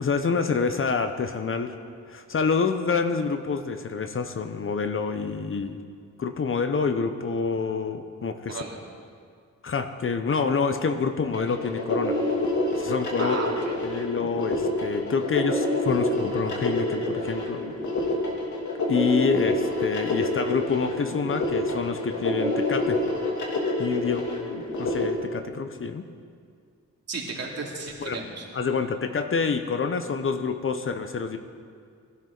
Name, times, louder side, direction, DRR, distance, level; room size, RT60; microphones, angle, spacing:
voice 1, 0.0-1.8 2.1-5.8 6.2-8.6 9.6-12.2 12.8-13.4 13.8-17.6 18.9-23.0 23.8-24.3 24.8-26.1 28.0-28.2 28.5-31.4, left 5 dB, 40° left, 8 dB, 0.8 m, -27 dB
voice 2, 8.5-8.8 13.2-13.8 27.1-28.5, right 3 dB, 50° right, -2 dB, 2.8 m, -34 dB
sound 1, 11.3-25.0, left 2 dB, 65° left, 2.8 m, -27 dB
20.0 x 12.0 x 4.0 m, 2.1 s
wide cardioid pair, 115°, 32 cm